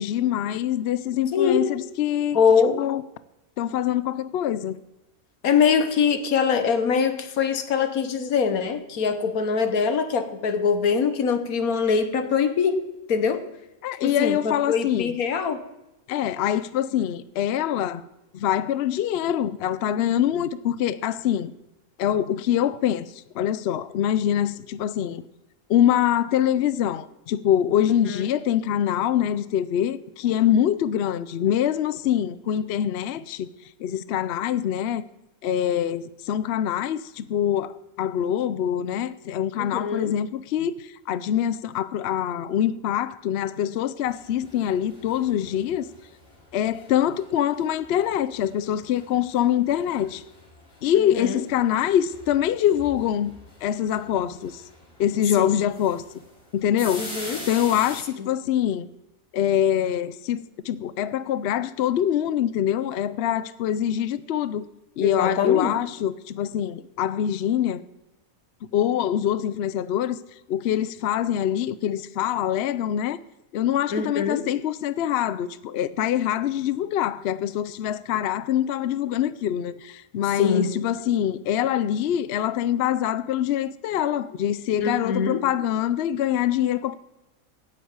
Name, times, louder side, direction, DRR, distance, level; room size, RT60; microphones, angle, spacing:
voice 1, 0.0-2.4 2.8-3.0 3.6-4.8 13.8-15.1 16.1-18.0 18.3-21.5 22.0-25.2 25.7-33.5 33.8-35.1 35.4-45.9 46.5-50.2 50.8-53.3 53.6-54.6 55.0-56.0 56.5-57.1 57.5-58.9 59.3-64.6 65.0-67.9 68.7-70.2 70.5-73.2 73.5-87.0, left 10 dB, 60° left, 0.7 m, -24 dB
voice 2, 1.3-1.7 2.3-2.8 5.4-12.8 13.1-13.4 14.0-15.6 28.1-28.2 39.6-40.1 51.0-51.4 55.4-55.5 57.0-57.4 58.2-58.3 65.0-65.7 73.9-74.5 80.4-80.7 84.8-85.4, left 6 dB, 85° left, 1.6 m, -23 dB
sound 1, 44.0-58.0, left 1 dB, 40° left, 3.2 m, -44 dB
9.4 x 8.5 x 8.8 m
omnidirectional pair, 1.5 m